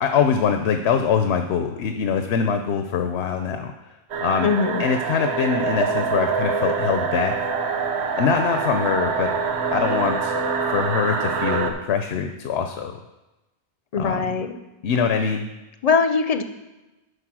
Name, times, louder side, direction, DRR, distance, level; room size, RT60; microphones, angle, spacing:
voice 1, 0.0-3.7 4.2-4.5 4.8-7.5 8.1-9.3 9.7-10.4 10.7-13.0 14.0-14.3 14.8-15.5, left 6 dB, 90° left, 6 dB, 0.9 m, -23 dB
sound 1, 4.1-11.7, right 5 dB, 90° right, 1.0 m, -25 dB
voice 2, 4.4-4.8 13.9-14.5 15.8-16.4, left 5 dB, 45° left, 8 dB, 0.6 m, -21 dB
8.2 x 5.3 x 6.1 m, 1.1 s
omnidirectional pair, 1.1 m